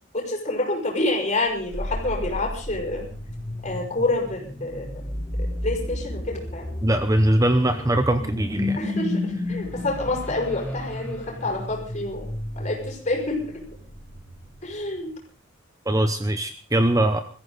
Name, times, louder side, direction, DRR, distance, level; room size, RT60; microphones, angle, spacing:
voice 1, 0.1-3.1 3.6-4.9 5.4-6.7 8.8-12.3 12.6-13.6 14.6-15.1, left 2 dB, 35° left, 0 dB, 5.7 m, -28 dB
sound 1, 1.5-15.0, left 1 dB, 10° left, 3.3 m, -32 dB
voice 2, 6.8-8.8 15.9-17.2, right 1 dB, 15° right, 9 dB, 0.8 m, -21 dB
22.5 x 14.5 x 4.1 m, 0.41 s
head